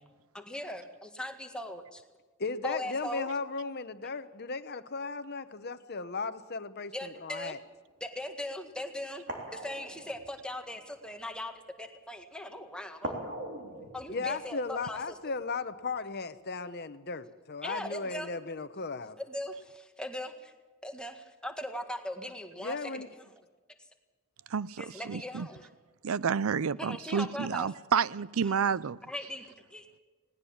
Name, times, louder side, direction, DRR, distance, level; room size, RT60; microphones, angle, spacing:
voice 1, 0.3-2.0 2.6-3.3 6.9-7.6 8.0-9.2 9.5-13.2 13.9-15.0 17.6-18.3 19.2-20.5 20.8-23.0 24.8-25.7 26.8-27.7 28.4-28.5 29.1-29.4 29.7-29.9, left 1 dB, 5° left, 1.7 m, -39 dB
voice 2, 2.4-7.6 14.1-19.2 22.6-23.1, left 4 dB, 50° left, 1.0 m, -36 dB
sound 1, 7.7-7.9 8.7-8.8 9.3-11.0 13.0-15.6 15.9-16.0, right 1 dB, 55° right, 3.7 m, -42 dB
voice 3, 24.5-25.5 26.0-29.0, right 6 dB, 75° right, 0.5 m, -30 dB
19.5 x 18.5 x 7.3 m
head